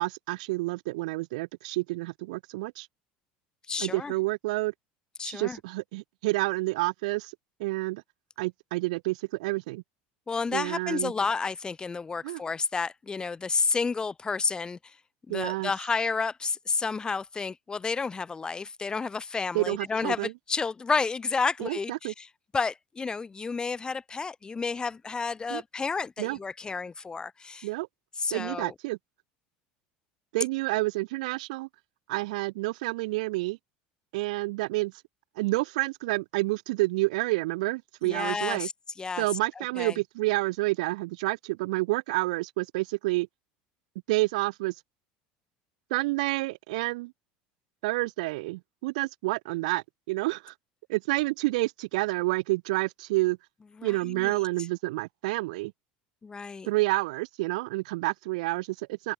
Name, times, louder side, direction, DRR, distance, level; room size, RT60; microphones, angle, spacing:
voice 1, 0.0-2.9 3.8-4.7 5.2-7.3 7.6-8.0 8.4-9.8 10.5-11.1 12.2-12.4 15.3-15.7 19.5-20.3 21.6-22.1 25.5-25.6 26.2-26.4 27.6-27.9 28.3-29.0 30.3-31.7 32.1-33.6 34.1-34.9 35.4-38.7 39.2-43.3 44.1-44.7 45.9-47.1 47.8-50.5 50.9-53.4 53.8-55.7 56.7-59.1, right 22 dB, 85° right, 1.9 m, -29 dB
voice 2, 3.7-4.1 5.2-5.6 10.3-15.0 15.3-22.3 22.5-27.7 28.2-28.7 38.0-38.7 39.0-39.3 39.6-40.0 53.8-54.4 56.2-56.7, left 4 dB, 20° left, 4.7 m, -31 dB
supercardioid pair, 105°, 4 cm